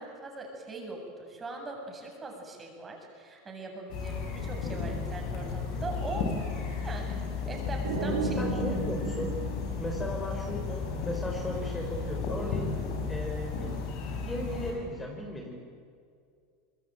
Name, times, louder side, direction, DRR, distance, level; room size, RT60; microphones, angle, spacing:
voice 1, 0.0-6.3 6.8-7.2 7.4-8.4, right 3 dB, 20° right, 2 dB, 7.8 m, -40 dB
sound 1, 3.9-14.7, left 5 dB, 60° left, 7.2 m, -34 dB
sound 2, 7.8-10.6, right 3 dB, 75° right, 4.9 m, -34 dB
voice 2, 8.1-9.3 9.8-12.7 13.1-13.7 14.1-15.6, left 1 dB, 15° left, 1 dB, 4.9 m, -36 dB
25.5 x 21.0 x 9.1 m, 2.3 s
hypercardioid pair, 90°, 0 cm